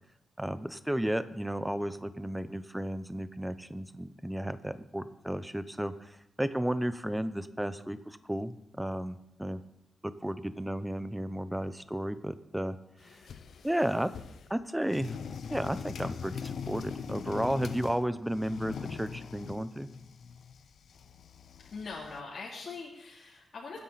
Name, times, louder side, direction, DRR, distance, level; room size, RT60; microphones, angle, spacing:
voice 1, 0.4-9.6 10.2-12.8 13.0-13.2 13.6-14.1 14.5-15.2 15.5-19.9, right 1 dB, 5° right, 12 dB, 0.7 m, -33 dB
sound 1, 13.0-14.5 14.9-18.0 18.4-22.2, left 6 dB, 80° left, 0.8 m, -42 dB
voice 2, 21.6-23.8, left 4 dB, 65° left, -6 dB, 2.9 m, -42 dB
24.5 x 10.0 x 4.1 m, 0.82 s
wide cardioid pair, 135°, 0 cm